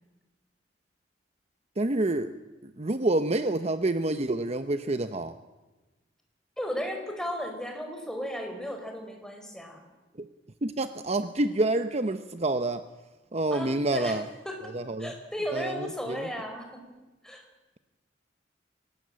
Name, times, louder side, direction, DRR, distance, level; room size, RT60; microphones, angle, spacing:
voice 1, 1.8-2.3 2.8-5.3 10.2-10.3 10.6-12.8 13.3-14.2 14.7-15.1 15.5-16.3, right 2 dB, 35° right, 10 dB, 0.8 m, -28 dB
voice 2, 6.6-9.8 13.5-14.7 15.0-16.8 17.2-17.4, equal, 5° left, 3 dB, 4.5 m, -35 dB
24.0 x 19.0 x 8.8 m, 1.1 s
head